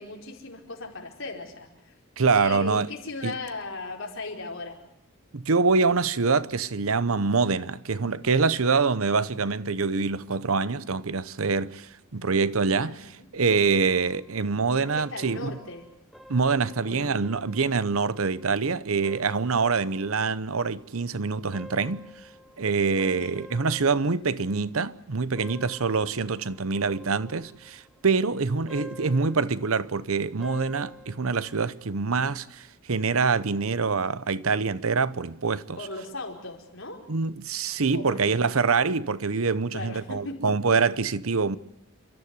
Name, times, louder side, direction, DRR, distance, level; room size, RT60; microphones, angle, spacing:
voice 1, 0.0-1.9 2.4-4.8 12.8-13.3 14.9-15.9 16.8-17.1 22.9-23.3 28.8-29.0 35.8-37.0 37.9-38.4 39.7-40.5, left 2 dB, 60° left, 4.8 m, -38 dB
voice 2, 2.2-2.9 3.2-3.4 5.3-15.6 16.3-22.1 22.6-35.8 37.1-41.6, right 4 dB, 75° right, 0.9 m, -25 dB
sound 1, 13.5-31.7, equal, ahead, 1.2 m, -50 dB
29.5 x 13.0 x 9.7 m
head